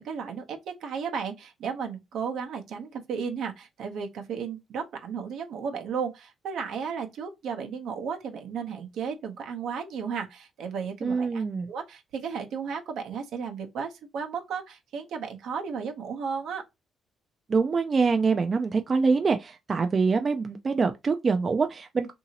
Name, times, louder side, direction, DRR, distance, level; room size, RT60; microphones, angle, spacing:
voice 1, 0.0-16.6, right 6 dB, 80° right, 0.8 m, -34 dB
voice 2, 11.0-11.7 17.5-22.1, right 4 dB, 40° right, 0.4 m, -25 dB
2.8 x 2.7 x 2.7 m
cardioid pair, 90°, 0 cm